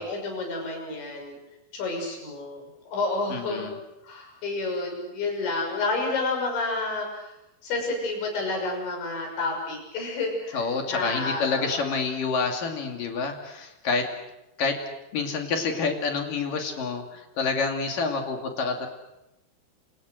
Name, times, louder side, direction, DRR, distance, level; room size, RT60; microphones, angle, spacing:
voice 1, 0.0-1.4 1.7-3.7 4.0-7.3 7.6-11.9, left 3 dB, 70° left, 2 dB, 8.7 m, -30 dB
voice 2, 3.3-3.7 10.5-14.1 14.6-14.8 15.1-18.9, left 4 dB, 50° left, 4 dB, 3.8 m, -28 dB
29.0 x 28.0 x 6.5 m, 0.92 s
omnidirectional pair, 5.4 m